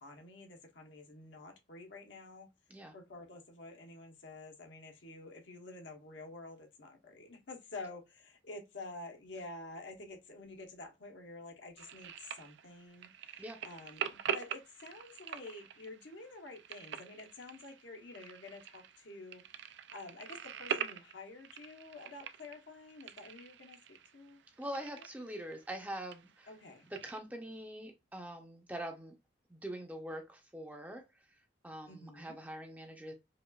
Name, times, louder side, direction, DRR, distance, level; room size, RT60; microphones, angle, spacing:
voice 1, 0.0-2.5 2.9-24.4 24.7-25.1 26.5-26.9 31.9-32.4, left 2 dB, 70° left, 1.0 m, -49 dB
sound 1, 11.8-27.2, right 8 dB, 65° right, 0.4 m, -44 dB
voice 2, 24.6-26.5 26.9-29.1 29.5-31.0 31.6-33.1, right 1 dB, 10° right, 0.6 m, -43 dB
5.0 x 2.4 x 2.3 m
head